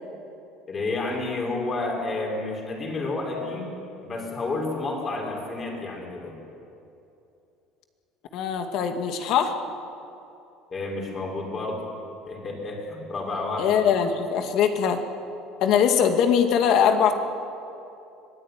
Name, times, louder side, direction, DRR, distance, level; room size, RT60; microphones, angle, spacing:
voice 1, 0.7-3.7 4.0-6.4 10.7-11.8 12.3-13.8, left 2 dB, 25° left, -1 dB, 5.8 m, -30 dB
voice 2, 8.3-9.6 13.6-15.0 15.6-17.1, left 7 dB, 50° left, 6 dB, 2.2 m, -21 dB
25.0 x 18.5 x 9.6 m, 2.8 s
cardioid pair, 160°, 0 cm